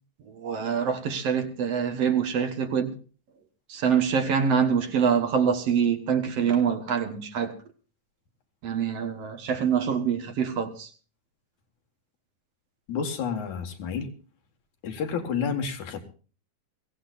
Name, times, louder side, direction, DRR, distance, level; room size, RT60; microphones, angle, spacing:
voice 1, 0.3-3.0 3.7-7.5 8.6-10.9, right 7 dB, 60° right, 2.4 m, -25 dB
voice 2, 12.9-14.1 14.8-16.0, left 6 dB, 80° left, 3.2 m, -30 dB
23.0 x 17.0 x 2.6 m
omnidirectional pair, 3.3 m